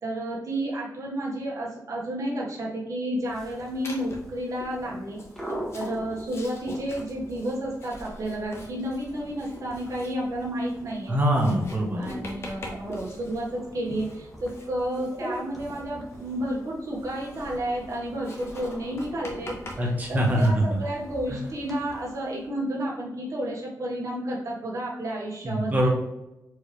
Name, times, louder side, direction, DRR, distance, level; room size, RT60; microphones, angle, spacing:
voice 1, 0.0-5.2 5.7-11.2 11.9-25.7, right 1 dB, 60° right, -4 dB, 1.4 m, -31 dB
sound 1, 3.2-22.5, equal, 5° left, 0.9 m, -43 dB
Writing, 3.8-4.4 5.1-20.5, left 1 dB, 45° left, 0.9 m, -45 dB
voice 2, 11.1-12.1 19.8-20.8 21.3-21.4 25.4-25.9, equal, 25° right, -1 dB, 1.1 m, -23 dB
4.5 x 3.2 x 3.3 m, 0.92 s
wide cardioid pair, 165°, 6 cm